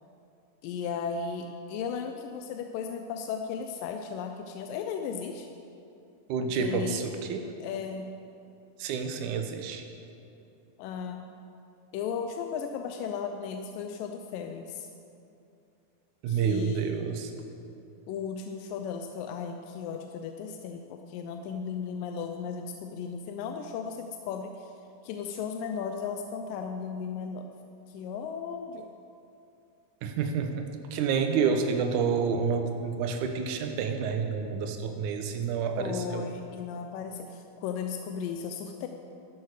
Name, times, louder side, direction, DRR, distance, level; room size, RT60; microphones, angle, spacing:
voice 1, 0.6-5.5 6.4-7.1 7.6-8.2 10.8-11.3 11.9-14.9 16.3-17.1 18.1-24.7 25.0-27.5 27.9-28.9 35.8-38.9, left 6 dB, 80° left, 5 dB, 2.1 m, -36 dB
voice 2, 6.3-7.5 8.8-9.8 16.2-17.3 30.0-36.2, right 6 dB, 70° right, 5 dB, 2.0 m, -29 dB
13.5 x 10.5 x 4.8 m, 2.7 s
omnidirectional pair, 4.3 m